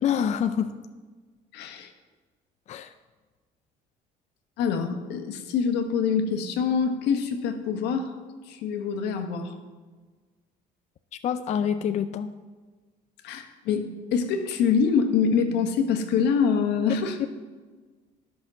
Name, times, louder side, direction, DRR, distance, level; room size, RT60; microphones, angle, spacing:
voice 1, 0.0-0.7 2.7-2.9 11.2-12.3 16.9-17.3, left 8 dB, 45° left, 9 dB, 0.4 m, -26 dB
voice 2, 1.5-1.9 4.6-8.1 8.5-9.6 13.2-17.2, left 6 dB, 85° left, 6 dB, 1.2 m, -25 dB
11.0 x 6.2 x 6.2 m, 1.4 s
cardioid pair, 110°, 17 cm